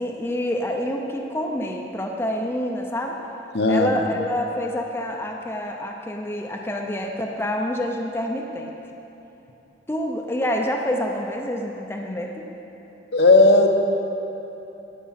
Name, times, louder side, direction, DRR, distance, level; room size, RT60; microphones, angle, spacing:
voice 1, 0.0-3.2 3.7-8.7 9.9-12.5, left 1 dB, 10° left, 1 dB, 0.6 m, -27 dB
voice 2, 3.5-3.9 13.1-13.7, left 2 dB, 60° left, 4 dB, 0.8 m, -15 dB
11.5 x 8.4 x 5.7 m, 3.0 s
head